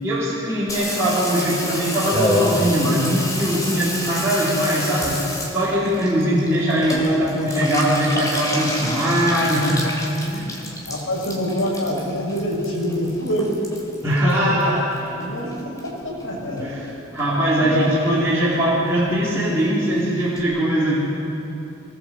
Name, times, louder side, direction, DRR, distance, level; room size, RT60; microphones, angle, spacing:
voice 1, 0.0-5.1 5.5-10.1 10.3-10.5 14.0-14.8 16.6-21.0, equal, 15° right, -10 dB, 4.1 m, -21 dB
Water tap faucet / Bathtub (filling or washing), 0.7-15.2 15.5-16.2 16.6-16.7 16.9-17.0 17.2-17.6 17.8-17.9 18.2-18.3 18.5-18.6 18.9-19.0 19.2-19.3 19.6-19.7 20.0-20.1 20.4-20.5, left 1 dB, 15° left, 3.4 m, -28 dB
voice 2, 10.9-13.6 14.1-14.8 15.1-16.8 17.6-18.2, equal, 85° left, -2 dB, 7.0 m, -26 dB
24.0 x 20.0 x 7.9 m, 2.9 s
head